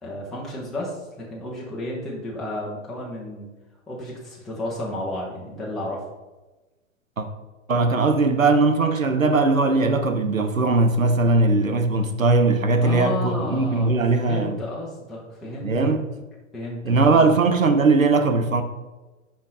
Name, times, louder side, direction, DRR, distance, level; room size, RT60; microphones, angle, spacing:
voice 1, 0.0-3.5 3.9-6.0 12.8-15.7 16.5-17.3, left 1 dB, ahead, 0.3 m, -32 dB
voice 2, 7.7-14.6 15.6-16.1 16.8-18.6, right 3 dB, 90° right, 0.7 m, -19 dB
5.4 x 5.2 x 3.7 m
figure-of-eight pair, 105°, 39 cm